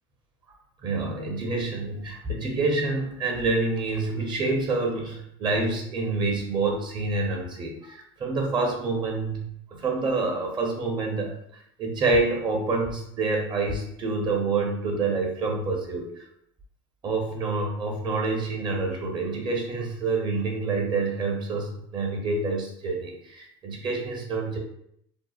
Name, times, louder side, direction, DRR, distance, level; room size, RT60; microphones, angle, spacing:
voice 1, 0.8-11.3 11.8-16.1 17.0-24.6, right 3 dB, 40° right, 1 dB, 0.7 m, -27 dB
2.7 x 2.1 x 2.3 m, 0.71 s
supercardioid pair, 85°, 12 cm